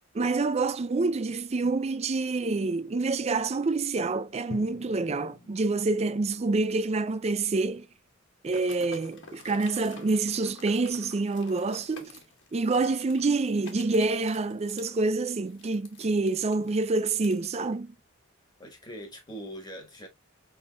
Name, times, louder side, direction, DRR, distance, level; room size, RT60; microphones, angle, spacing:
voice 1, 0.1-7.9 8.4-12.2 12.5-17.9, right 3 dB, 30° right, 0.4 m, -27 dB
Drum, 4.5-8.5, left 3 dB, 40° left, 0.5 m, -49 dB
sound 1, 8.4-17.5, left 4 dB, 60° left, 1.4 m, -50 dB
voice 2, 18.6-20.1, equal, 20° left, 1.4 m, -42 dB
5.3 x 3.6 x 2.3 m
head